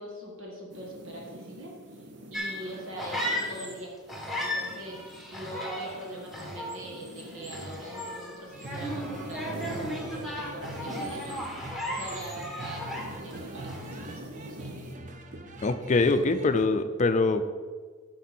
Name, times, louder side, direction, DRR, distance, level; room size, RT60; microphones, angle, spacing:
voice 1, 0.0-2.0 2.3-3.9 4.3-11.4 11.8-14.8, right 1 dB, 85° right, -1 dB, 2.0 m, -42 dB
sound 1, 0.7-11.8 12.1-14.9, right 1 dB, 65° right, 0.9 m, -46 dB
sound 2, 2.3-3.8 4.1-13.4 13.7-14.1, equal, ahead, 1.1 m, -36 dB
sound 3, 8.5-16.7, right 1 dB, 40° right, 0.7 m, -43 dB
voice 2, 15.6-17.5, left 3 dB, 35° left, 10 dB, 0.5 m, -24 dB
9.2 x 6.2 x 4.4 m, 1.5 s
head